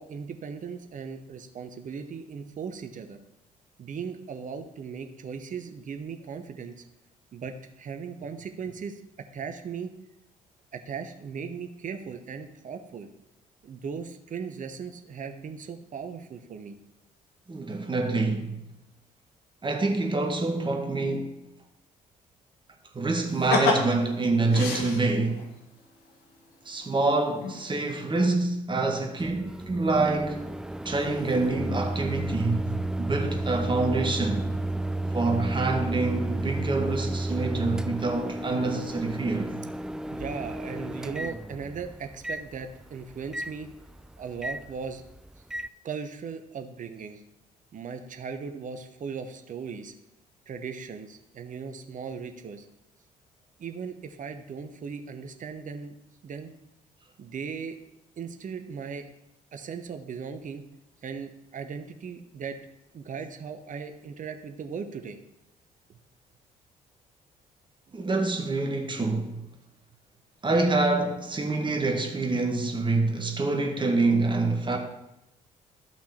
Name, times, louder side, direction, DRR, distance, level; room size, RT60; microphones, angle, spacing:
voice 1, 0.0-3.2 3.8-6.8 7.3-9.9 10.7-13.1 13.6-16.8 40.1-43.7 44.2-45.0 45.8-47.2 47.7-49.9 50.5-52.7 53.6-56.0 56.2-56.5 57.2-57.8 58.2-59.1 59.5-60.7 61.0-62.6 62.9-65.2, right 6 dB, 40° right, 1.0 m, -38 dB
voice 2, 17.5-18.5 19.6-21.3 22.9-25.4 26.7-30.5 30.9-32.7 33.0-34.5 35.1-39.5 67.9-69.3 70.4-74.8, right 3 dB, 25° right, 1.8 m, -26 dB
sound 1, 23.3-25.4 26.8-26.9 27.4-27.8 28.2-28.3, left 3 dB, 55° left, 1.8 m, -28 dB
Microwave oven, 29.2-45.7, right 1 dB, 5° right, 0.3 m, -33 dB
13.5 x 5.8 x 4.4 m
figure-of-eight pair, 45°, 20 cm